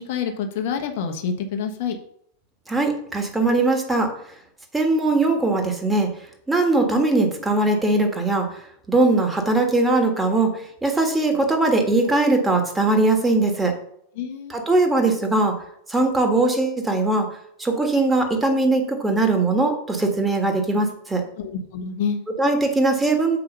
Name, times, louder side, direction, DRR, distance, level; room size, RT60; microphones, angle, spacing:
voice 1, 0.0-2.0 14.2-14.6 21.4-22.2, left 6 dB, 50° left, 4 dB, 1.1 m, -27 dB
voice 2, 2.7-4.1 4.7-6.1 6.5-8.6 8.9-13.7 14.5-15.5 15.9-17.3 17.6-21.2 22.4-23.4, right 2 dB, 10° right, 3 dB, 1.5 m, -20 dB
7.0 x 4.8 x 5.4 m, 0.71 s
figure-of-eight pair, 90°, 0 cm